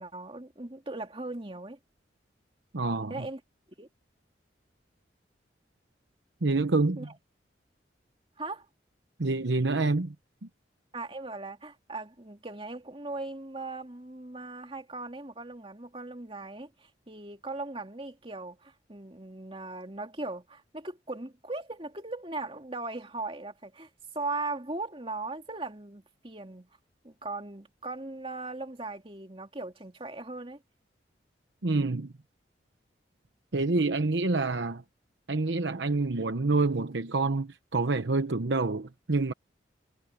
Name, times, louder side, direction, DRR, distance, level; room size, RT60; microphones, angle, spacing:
voice 1, 0.0-1.8 3.1-3.4 3.8-3.9 7.0-7.1 8.4-8.7 10.9-23.9 24.1-26.7 27.0-30.6, right 2 dB, 30° right, 2.6 m, -38 dB
voice 2, 2.7-3.3 6.4-7.1 9.2-10.1 31.6-32.1 33.5-34.8 35.3-39.3, right 3 dB, 75° right, 1.0 m, -27 dB
head